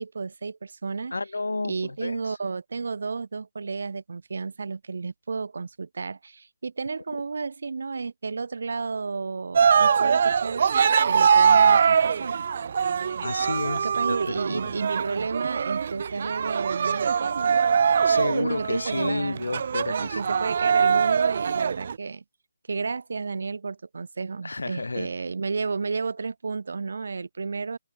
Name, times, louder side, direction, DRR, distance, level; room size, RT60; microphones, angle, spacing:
voice 1, 0.0-1.1 1.6-10.7 11.0-12.4 13.8-17.7 18.2-19.4 19.8-22.2 22.7-27.8, right 4 dB, 65° right, 1.3 m, -32 dB
voice 2, 1.1-2.4 13.2-14.2 14.5-14.7 18.0-20.5 24.4-25.1, left 3 dB, 80° left, 1.6 m, -31 dB
Cheering, 9.5-21.9, right 6 dB, 50° right, 0.5 m, -22 dB
figure-of-eight pair, 155°, 0 cm